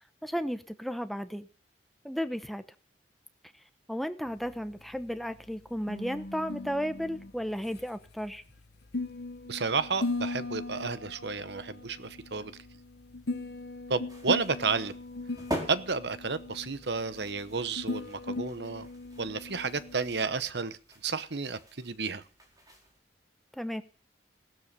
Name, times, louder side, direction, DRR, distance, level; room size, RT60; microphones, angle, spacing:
voice 1, 0.2-1.5 2.0-2.6 3.9-8.4 23.5-23.8, equal, ahead, 10 dB, 0.8 m, -34 dB
sound 1, 4.3-20.4, left 2 dB, 60° left, 1.0 m, -39 dB
voice 2, 9.5-12.5 13.9-14.9 15.7-18.9 19.2-20.8 21.0-22.2, right 4 dB, 65° right, 14 dB, 1.0 m, -31 dB
sound 2, 14.1-23.0, equal, 20° right, 4.7 m, -44 dB
17.0 x 12.5 x 6.8 m, 0.41 s
head